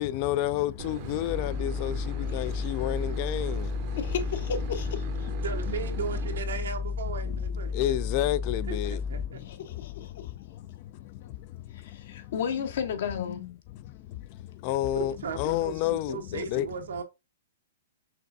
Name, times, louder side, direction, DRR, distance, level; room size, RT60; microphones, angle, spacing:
voice 1, 0.0-4.0 5.3-5.4 5.7-5.9 7.2-12.7 13.2-16.7, left 13 dB, 40° left, 0.3 m, -32 dB
Boat Water vehicle / Engine, 0.8-6.4, right 8 dB, 40° right, 0.7 m, -40 dB
sound 1, 1.3-9.3, left 5 dB, 5° right, 0.7 m, -32 dB
voice 2, 3.9-5.3 9.4-10.3 11.7-13.4, left 7 dB, 65° left, 1.0 m, -33 dB
voice 3, 5.4-7.8 8.7-9.4 14.9-17.0, right 6 dB, 85° right, 1.0 m, -36 dB
5.7 x 3.2 x 2.6 m
hypercardioid pair, 150°, 0 cm